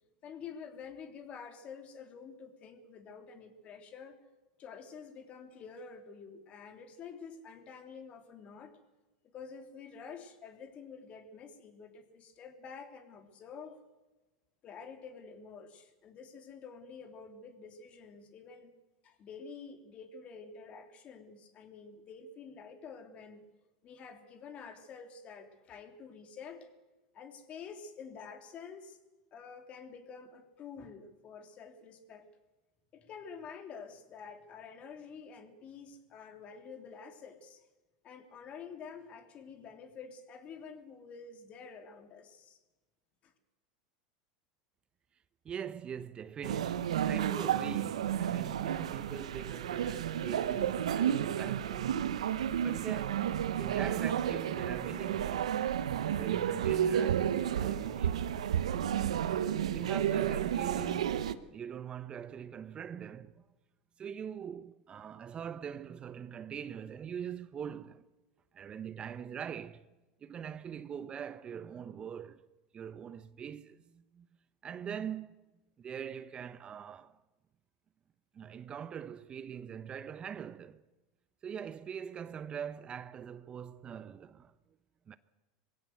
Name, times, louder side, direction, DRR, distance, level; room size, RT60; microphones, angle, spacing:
voice 1, 0.2-4.2 4.6-8.8 9.2-13.8 14.6-18.7 19.0-23.5 23.8-26.7 27.1-29.0 29.3-32.3 32.9-37.6 38.0-42.6 43.2-43.3, left 6 dB, 40° left, 3.2 m, -49 dB
voice 2, 45.4-51.9 52.6-55.6 56.1-58.2 59.7-63.4 64.0-68.0 68.5-69.9 70.2-72.4 72.7-74.3 74.6-75.4 75.8-77.2 78.3-80.8 81.4-84.5 85.1-85.2, right 8 dB, 30° right, 0.9 m, -42 dB
sound 1, 46.4-61.3, right 9 dB, 85° right, 1.0 m, -32 dB
21.5 x 16.5 x 8.0 m
hypercardioid pair, 100°, 3 cm